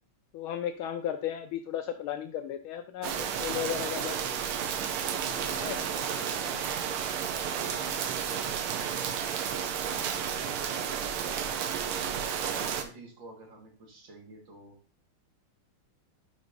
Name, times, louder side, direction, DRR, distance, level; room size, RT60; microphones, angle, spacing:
voice 1, 0.3-4.4 5.6-5.8, left 10 dB, 75° left, 7 dB, 1.4 m, -35 dB
sound 1, 3.0-12.8, right 8 dB, 80° right, 1.6 m, -32 dB
voice 2, 5.2-9.4 9.8-11.5 12.0-14.8, right 2 dB, 60° right, 0 dB, 2.5 m, -49 dB
9.3 x 5.3 x 2.6 m, 0.37 s
omnidirectional pair, 2.4 m